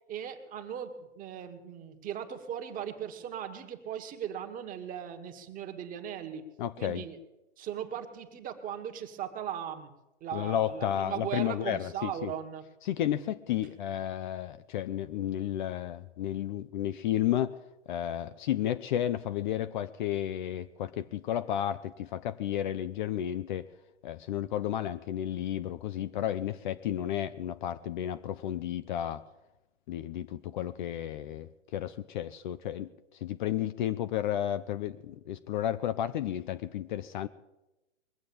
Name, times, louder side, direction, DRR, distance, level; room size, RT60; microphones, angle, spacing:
voice 1, 0.1-6.4 6.8-7.2 7.6-9.9 10.2-12.6, right 9 dB, 20° right, 5 dB, 1.5 m, -38 dB
voice 2, 6.6-7.0 10.3-12.3 12.9-17.6 17.9-23.7 24.0-29.2 29.9-32.9 33.2-37.3, left 11 dB, 40° left, 12 dB, 0.6 m, -32 dB
21.0 x 7.6 x 8.6 m, 0.98 s
hypercardioid pair, 125°, 37 cm